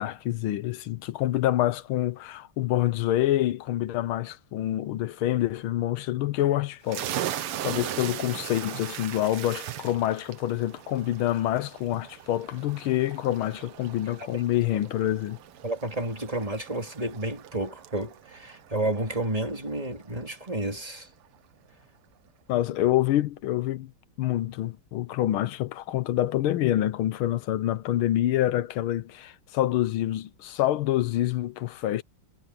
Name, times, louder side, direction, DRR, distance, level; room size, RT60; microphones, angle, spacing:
voice 1, 0.0-15.4 22.5-23.9 24.2-32.0, left 13 dB, 75° left, 1.6 m, -27 dB
sound 1, 6.9-20.2, right 11 dB, 85° right, 2.0 m, -39 dB
voice 2, 15.6-21.1, right 1 dB, 15° right, 3.2 m, -31 dB
omnidirectional pair, 2.4 m